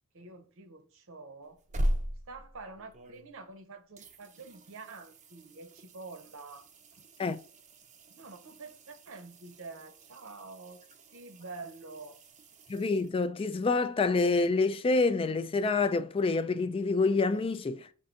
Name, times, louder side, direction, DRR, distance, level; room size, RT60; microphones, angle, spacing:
voice 1, 0.1-1.6 2.3-6.7 7.0-7.1 8.1-12.2, right 3 dB, 65° right, 0.8 m, -47 dB
sound 1, 1.4-3.6 4.0-13.6 16.3-16.4, equal, 35° right, 0.5 m, -40 dB
voice 2, 12.7-17.9, left 3 dB, 25° left, 0.3 m, -27 dB
5.3 x 2.6 x 3.7 m
head